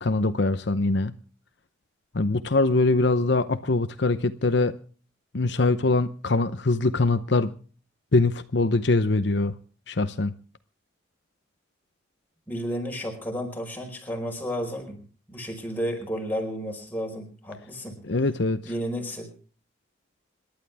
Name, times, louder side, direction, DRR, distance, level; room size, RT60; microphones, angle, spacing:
voice 1, 0.0-1.1 2.1-4.7 5.3-7.5 8.1-9.5 9.9-10.3 18.1-18.6, left 2 dB, 60° left, 0.8 m, -23 dB
voice 2, 12.5-15.0 15.3-18.0 18.6-19.3, equal, 10° left, 4.9 m, -32 dB
27.0 x 12.0 x 3.5 m
head